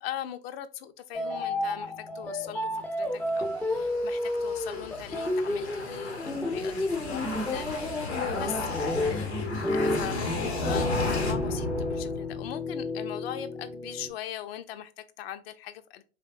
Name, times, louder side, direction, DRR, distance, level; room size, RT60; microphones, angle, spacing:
voice 1, 0.0-2.7 3.0-16.0, left 11 dB, 70° left, 0.5 m, -40 dB
sound 1, 1.1-14.1, left 2 dB, 5° left, 0.4 m, -31 dB
sound 2, 3.2-12.6, left 2 dB, 90° left, 0.9 m, -34 dB
3.3 x 3.3 x 2.3 m
figure-of-eight pair, 70°, 32 cm